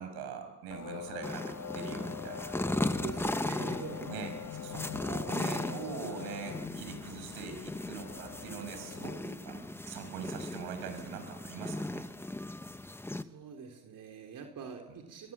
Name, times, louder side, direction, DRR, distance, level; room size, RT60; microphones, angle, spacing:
voice 1, 0.0-2.6 4.0-4.3 4.6-12.1 12.3-12.5, right 6 dB, 80° right, 6 dB, 6.4 m, -43 dB
sound 1, 0.7-9.2, left 8 dB, 40° left, 1.2 m, -44 dB
sound 2, 1.2-13.2, left 1 dB, 5° left, 1.2 m, -37 dB
voice 2, 3.0-4.1 13.2-15.3, right 6 dB, 55° right, 3 dB, 3.6 m, -44 dB
24.0 x 23.5 x 7.5 m, 1.1 s
supercardioid pair, 85°, 38 cm